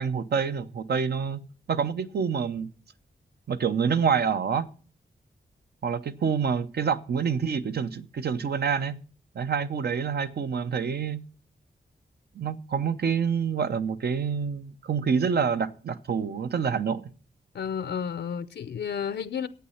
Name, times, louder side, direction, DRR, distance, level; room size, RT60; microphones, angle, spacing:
voice 1, 0.0-1.4 1.7-2.7 3.5-4.7 5.8-9.0 9.3-11.2 12.4-17.0, right 6 dB, 70° right, 0.8 m, -27 dB
voice 2, 17.5-19.5, left 7 dB, 85° left, 0.6 m, -31 dB
11.5 x 8.7 x 5.7 m
wide cardioid pair, 95°, 17 cm